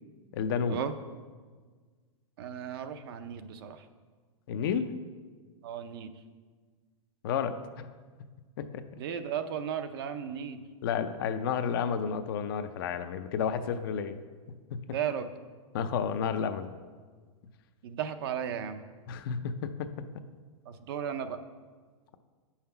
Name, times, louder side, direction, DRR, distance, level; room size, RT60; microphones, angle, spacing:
voice 1, 0.3-0.8 4.5-4.9 7.2-7.8 8.6-8.7 10.8-14.2 14.7-14.8 15.7-16.8 19.1-19.9, left 7 dB, 40° left, 9 dB, 0.5 m, -31 dB
voice 2, 2.4-3.9 5.6-6.1 9.0-10.6 14.9-15.3 17.8-18.8 20.7-21.4, right 8 dB, 40° right, 9 dB, 0.6 m, -35 dB
8.7 x 5.7 x 5.7 m, 1.5 s
hypercardioid pair, 160°, 18 cm